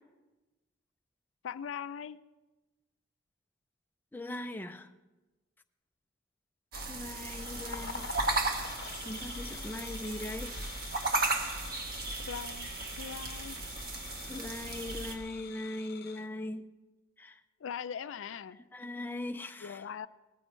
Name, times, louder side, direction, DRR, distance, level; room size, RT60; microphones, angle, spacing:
voice 1, 1.4-2.2 12.3-12.7 13.0-13.6 17.6-18.6 19.6-20.1, left 7 dB, 75° left, 0.4 m, -40 dB
voice 2, 4.1-4.9 6.9-8.1 9.1-10.6 14.3-16.7 17.2-17.4 18.7-19.8, left 1 dB, 10° left, 0.4 m, -40 dB
sound 1, 6.7-15.2, right 2 dB, 45° right, 1.4 m, -35 dB
sound 2, 7.2-16.3, left 6 dB, 50° left, 0.8 m, -47 dB
19.5 x 14.0 x 3.2 m
head